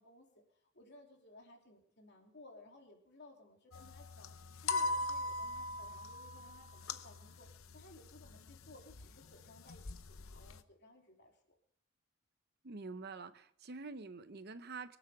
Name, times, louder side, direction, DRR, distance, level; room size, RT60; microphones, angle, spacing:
voice 1, 0.0-11.3, left 2 dB, 50° left, 2 dB, 3.1 m, -59 dB
sound 1, 3.7-10.6, left 2 dB, 70° left, 0.8 m, -41 dB
voice 2, 12.6-15.0, right 4 dB, 45° right, 12 dB, 0.7 m, -46 dB
24.5 x 8.2 x 4.9 m, 0.69 s
head